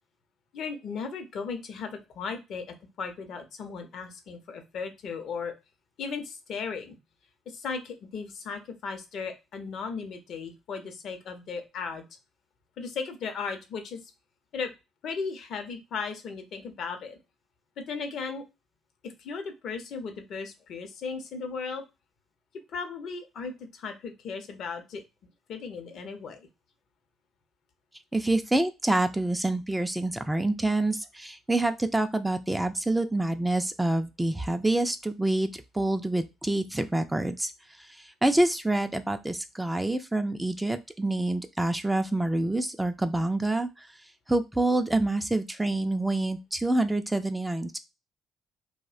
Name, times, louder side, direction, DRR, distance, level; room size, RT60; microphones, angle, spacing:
voice 1, 0.5-5.5 6.0-7.0 7.5-12.0 12.8-14.0 14.5-14.7 15.0-17.2 17.8-18.4 19.0-21.8 22.7-25.0 25.5-26.5, left 5 dB, 60° left, 7 dB, 0.6 m, -36 dB
voice 2, 28.1-43.9 44.3-47.8, right 2 dB, 10° right, 7 dB, 0.3 m, -27 dB
2.6 x 2.1 x 2.4 m, 0.24 s
hypercardioid pair, 55°, 0 cm